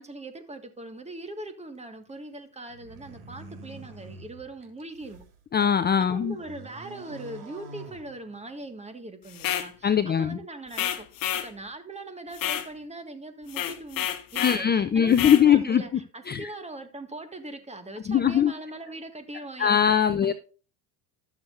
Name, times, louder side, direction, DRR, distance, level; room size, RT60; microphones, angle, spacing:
voice 1, 0.0-5.2 6.1-19.9 20.2-20.3, right 2 dB, 15° right, 1.7 m, -41 dB
sound 1, 2.7-5.3 5.8-8.6, right 3 dB, 85° right, 2.3 m, -46 dB
voice 2, 5.5-6.4 9.8-10.4 14.4-16.0 16.3-16.5 18.1-18.5 19.6-20.3, left 8 dB, 25° left, 0.6 m, -21 dB
sound 2, 9.3-9.7 10.7-11.5 12.3-12.7 13.5-14.6 15.1-15.4, left 11 dB, 50° left, 1.2 m, -29 dB
12.5 x 7.3 x 2.5 m
hypercardioid pair, 80°, 44 cm